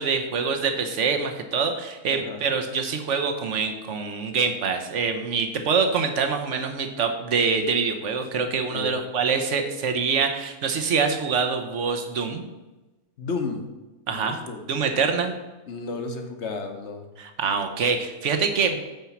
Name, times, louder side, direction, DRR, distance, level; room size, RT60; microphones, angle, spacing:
voice 1, 0.0-12.4 14.1-14.4 14.7-15.4 17.2-18.8, right 5 dB, 55° right, 6 dB, 1.2 m, -25 dB
voice 2, 2.1-2.4 8.7-9.0 13.2-13.6 14.1-14.6 15.7-17.1, left 4 dB, 50° left, 5 dB, 1.2 m, -32 dB
9.1 x 4.5 x 7.2 m, 1.1 s
omnidirectional pair, 1.6 m